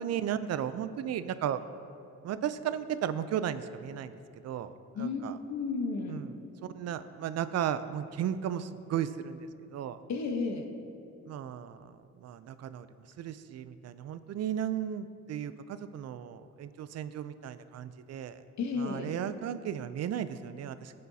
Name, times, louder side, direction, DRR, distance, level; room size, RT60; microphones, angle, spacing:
voice 1, 0.0-1.6 2.2-4.1 4.4-4.7 5.0-5.4 6.1-6.3 6.7-9.4 9.7-10.0 11.3-11.9 12.2-12.9 13.2-18.4 18.8-20.9, right 9 dB, 60° right, 13 dB, 0.4 m, -35 dB
voice 2, 4.9-6.2 10.1-10.7 18.6-19.1, left 4 dB, 65° left, 5 dB, 1.0 m, -33 dB
12.5 x 8.6 x 2.7 m, 2.5 s
cardioid pair, 90°, 30 cm